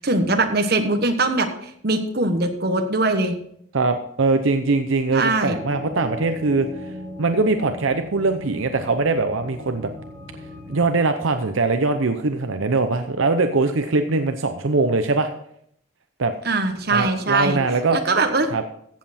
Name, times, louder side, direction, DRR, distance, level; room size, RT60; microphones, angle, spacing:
voice 1, 0.0-1.5 1.8-3.3 5.1-5.6 16.4-17.6 17.9-18.5, right 2 dB, 50° right, 6 dB, 1.3 m, -21 dB
voice 2, 3.7-6.9 7.2-9.9 10.7-15.3 16.2-16.3 16.9-18.0 18.5-18.6, right 3 dB, 75° right, 7 dB, 0.7 m, -21 dB
sound 1, 5.4-10.9, left 2 dB, 10° left, 4.3 m, -37 dB
14.5 x 7.7 x 4.3 m, 0.70 s
head